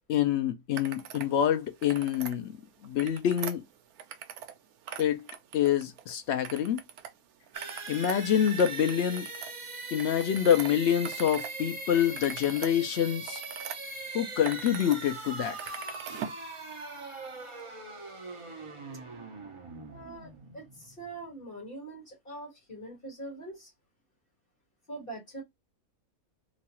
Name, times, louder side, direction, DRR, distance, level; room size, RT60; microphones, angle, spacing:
voice 1, 0.1-2.5 2.8-3.6 5.0-5.3 5.5-6.8 7.9-9.3 9.9-13.4 14.1-15.6, left 9 dB, 65° left, 0.7 m, -26 dB
sound 1, 0.7-1.3 1.7-2.4 2.8-4.6 4.8-6.0 6.4-7.1 7.4-11.5 11.9-13.8 14.2-15.0 15.3-16.4, right 9 dB, 85° right, 1.1 m, -42 dB
sound 2, 7.5-21.2, right 3 dB, 45° right, 0.4 m, -41 dB
voice 2, 19.9-23.7 24.9-25.4, right 2 dB, 40° left, 1.6 m, -43 dB
3.0 x 2.3 x 2.8 m
omnidirectional pair, 1.5 m